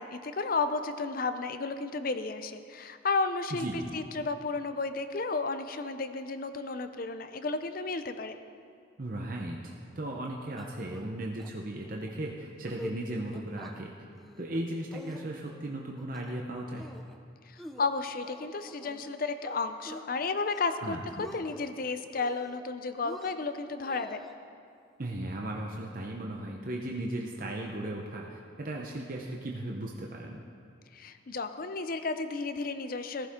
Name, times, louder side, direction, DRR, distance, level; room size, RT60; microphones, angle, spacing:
voice 1, 0.0-8.4 17.5-24.2 30.9-33.3, left 3 dB, 45° left, 9 dB, 0.6 m, -33 dB
voice 2, 3.5-3.9 9.0-13.9 14.4-16.9 20.8-21.2 25.0-30.4, right 1 dB, 45° right, 0 dB, 0.8 m, -36 dB
sound 1, 10.6-11.1 11.4-11.5 11.9-12.1 12.5-13.0 13.3-13.7 14.2-14.6 14.9-15.6 16.0-16.4 16.8-17.2 17.6-19.1 19.4-20.1 20.4-20.8 21.1-21.7 22.1-22.7 23.0-24.3, equal, ahead, 0.5 m, -46 dB
15.0 x 14.5 x 3.7 m, 2.3 s
head